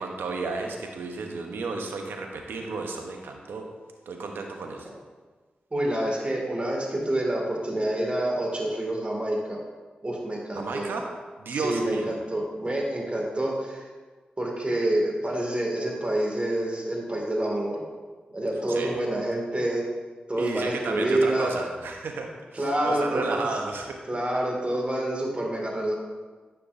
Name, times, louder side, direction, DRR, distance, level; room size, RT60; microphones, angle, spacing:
voice 1, 0.0-3.7 4.1-4.9 10.5-11.1 11.4-12.1 18.7-19.0 20.4-24.0, right 3 dB, 85° right, 3 dB, 0.8 m, -33 dB
voice 2, 5.7-9.6 10.0-10.9 11.5-13.9 14.4-17.8 18.3-19.8 20.3-21.6 22.5-23.6 24.1-25.9, right 1 dB, 35° right, -1 dB, 2.2 m, -27 dB
10.0 x 5.9 x 2.6 m, 1.4 s
cardioid pair, 40°, 4 cm